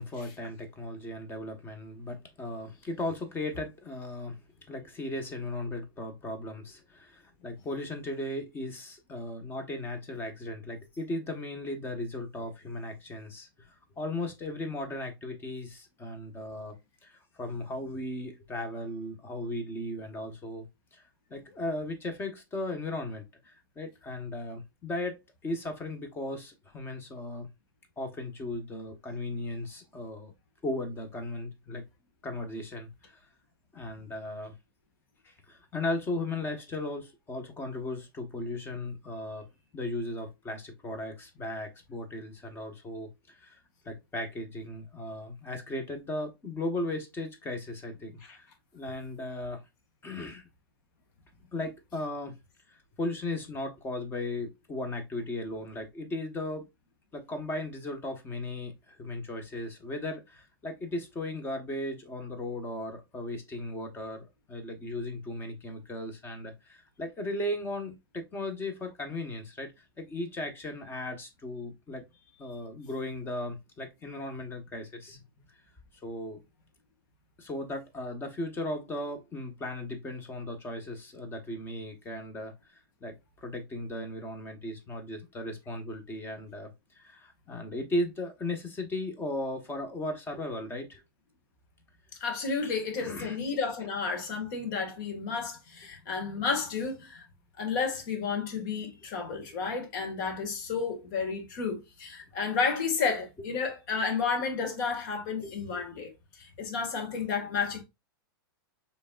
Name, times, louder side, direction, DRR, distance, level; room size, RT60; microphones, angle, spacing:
voice 1, 0.0-4.4 4.7-16.8 17.0-21.0 21.3-27.5 28.0-30.3 30.6-31.8 32.2-33.2 33.7-34.5 35.2-39.5 39.7-43.6 43.8-48.5 48.7-49.6 50.0-50.5 51.5-52.3 52.7-56.6 57.1-72.0 72.4-75.5 76.0-76.4 77.4-86.7 86.9-91.0 93.0-93.4 105.4-105.8, left 1 dB, 15° left, 1.2 m, -36 dB
voice 2, 92.2-97.3 97.6-107.8, left 5 dB, 55° left, 1.8 m, -32 dB
5.1 x 3.4 x 2.4 m
hypercardioid pair, 125°, 12 cm